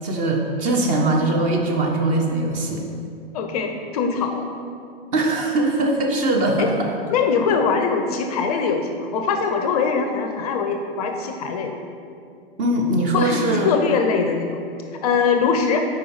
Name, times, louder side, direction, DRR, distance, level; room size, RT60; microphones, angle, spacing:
voice 1, 0.0-2.8 5.1-6.9 12.6-13.8, right 2 dB, 25° right, 1 dB, 0.8 m, -21 dB
voice 2, 3.3-4.5 6.6-6.7 7.1-11.8 13.1-14.6 15.0-15.8, left 5 dB, 40° left, 5 dB, 0.5 m, -22 dB
5.2 x 4.6 x 4.7 m, 2.4 s
figure-of-eight pair, 115°, 31 cm